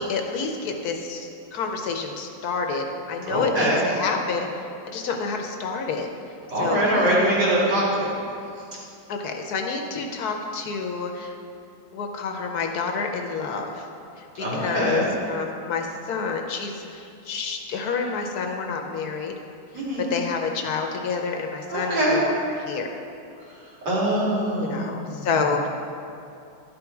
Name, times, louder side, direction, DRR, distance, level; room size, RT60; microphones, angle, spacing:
voice 1, 0.0-4.5 4.8-6.1 6.6-7.6 9.1-11.4 11.9-13.9 14.2-19.3 19.7-19.8 20.1-23.0 24.6-25.7, left 5 dB, 70° left, 3 dB, 1.1 m, -29 dB
voice 2, 3.3-3.8 6.5-8.1 14.3-15.0 19.7-20.0 21.7-22.2 23.8-25.3, right 1 dB, 75° right, -8 dB, 3.2 m, -23 dB
11.5 x 5.4 x 4.6 m, 2.6 s
omnidirectional pair, 1.9 m